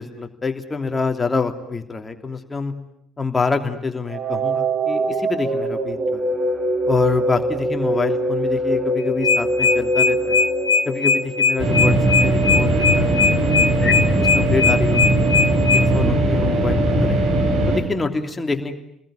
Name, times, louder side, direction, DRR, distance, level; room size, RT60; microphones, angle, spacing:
voice 1, 0.0-2.7 3.2-6.3 6.9-10.4 10.8-11.9 12.2-13.2 13.8-15.3 15.7-17.3 17.7-18.8, left 4 dB, 20° left, 5 dB, 3.0 m, -26 dB
sound 1, 4.1-12.0, right 1 dB, 35° right, 4.4 m, -23 dB
sound 2, 9.0-15.8, left 5 dB, 85° left, 2.3 m, -18 dB
sound 3, 11.6-17.8, right 1 dB, 55° right, 6.6 m, -19 dB
29.5 x 21.0 x 8.9 m, 0.73 s
figure-of-eight pair, 55°, 0 cm